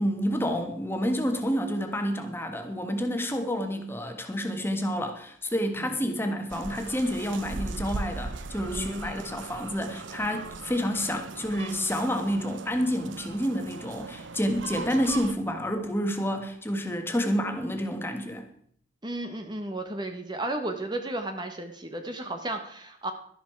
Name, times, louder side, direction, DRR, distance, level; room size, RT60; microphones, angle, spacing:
voice 1, 0.0-18.5, equal, 10° left, 5 dB, 1.6 m, -29 dB
sound 1, 6.5-15.3, right 3 dB, 80° right, 0.8 m, -39 dB
voice 2, 8.7-9.2 19.0-23.1, right 1 dB, 25° right, 6 dB, 1.2 m, -34 dB
13.0 x 11.5 x 4.6 m, 0.63 s
head